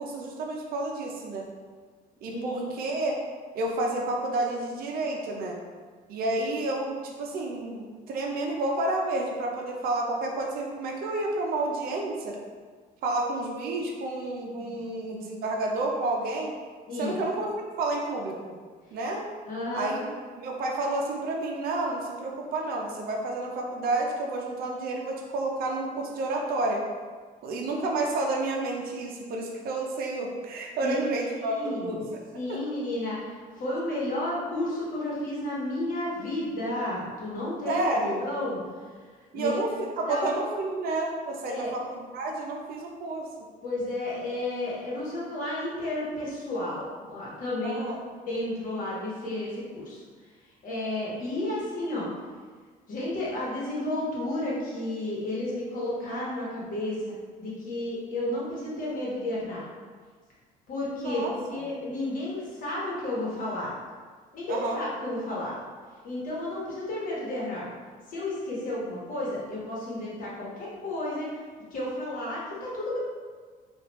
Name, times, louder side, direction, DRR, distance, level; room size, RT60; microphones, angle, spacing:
voice 1, 0.0-1.4 2.2-3.2 3.5-5.6 6.1-12.4 13.0-16.5 17.0-17.5 17.8-18.6 18.9-19.2 19.7-20.1 20.4-26.8 27.4-32.0 32.5-32.6 37.7-38.2 39.3-43.2 47.6-48.0 61.0-61.6 64.5-64.8, right 2 dB, 65° right, 0 dB, 0.5 m, -30 dB
voice 2, 2.2-2.6 14.5-14.9 16.9-17.2 19.5-20.0 30.8-31.1 31.4-32.1 32.3-38.6 39.3-39.5 40.1-40.3 41.5-41.7 43.6-47.8 48.2-50.0 50.6-52.1 52.9-59.6 60.7-63.7 64.3-65.6 66.0-67.7 68.1-71.4 71.7-73.0, left 1 dB, 55° left, -6 dB, 1.2 m, -32 dB
3.1 x 2.4 x 3.0 m, 1.5 s
cardioid pair, 110°, 17 cm